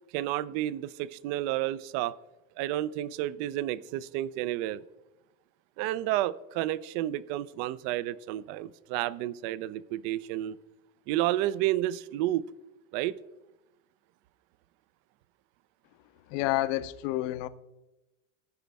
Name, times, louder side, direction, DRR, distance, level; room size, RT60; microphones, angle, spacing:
voice 1, 0.1-2.2 2.6-4.8 5.8-10.6 11.1-12.5 12.9-13.2, right 14 dB, 55° right, 0.5 m, -31 dB
voice 2, 16.3-17.5, left 16 dB, 65° left, 0.6 m, -29 dB
14.5 x 5.1 x 3.4 m
supercardioid pair, 130°, 40 cm